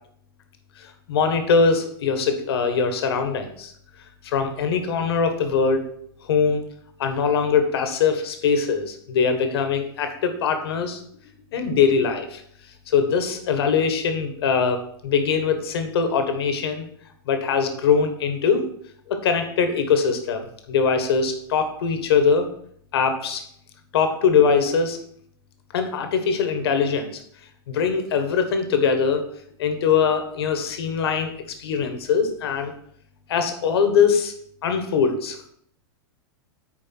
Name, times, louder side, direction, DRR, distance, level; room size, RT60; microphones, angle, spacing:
voice 1, 0.8-3.7 4.2-5.9 6.2-6.6 7.0-11.0 11.5-12.4 12.9-16.9 17.3-18.6 19.1-22.5 22.9-23.4 23.9-25.0 25.7-27.2 27.7-29.2 29.6-31.3 31.6-32.7 33.3-34.3 34.6-35.5, left 6 dB, 75° left, 7 dB, 1.5 m, -22 dB
9.1 x 4.7 x 4.6 m, 0.66 s
hypercardioid pair, 125°, 13 cm